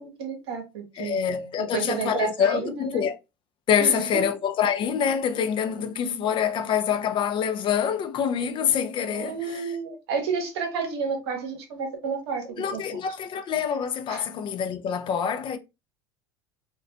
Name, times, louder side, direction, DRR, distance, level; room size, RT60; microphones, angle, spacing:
voice 1, 0.0-3.0 3.8-4.2 9.1-13.0 14.1-14.3, right 5 dB, 75° right, 0.8 m, -31 dB
voice 2, 1.0-3.2 3.7-9.7 12.6-15.6, left 8 dB, 40° left, 0.4 m, -26 dB
2.3 x 2.2 x 2.4 m
hypercardioid pair, 75°, 14 cm